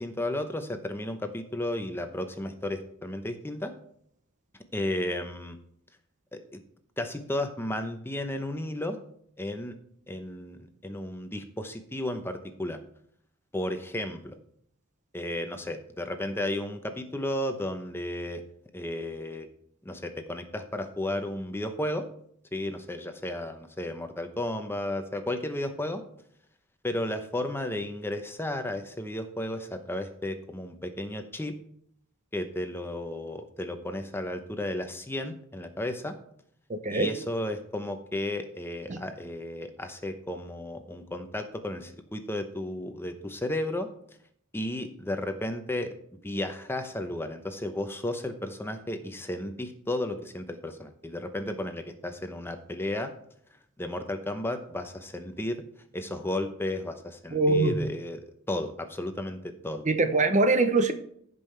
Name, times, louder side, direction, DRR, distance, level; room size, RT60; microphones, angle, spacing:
voice 1, 0.0-3.7 4.7-5.6 6.3-6.6 7.0-9.0 9.4-9.8 10.1-12.8 13.5-14.3 15.1-18.4 18.7-19.5 19.8-22.1 22.5-26.0 26.8-31.5 32.3-36.2 36.9-43.9 44.5-45.9 46.2-53.1 53.8-55.6 55.9-58.2 58.5-59.9, left 1 dB, 10° left, 0.8 m, -33 dB
voice 2, 36.7-37.1 38.9-39.0 57.3-57.8 59.8-60.9, right 3 dB, 35° right, 0.8 m, -23 dB
16.0 x 5.4 x 3.3 m
head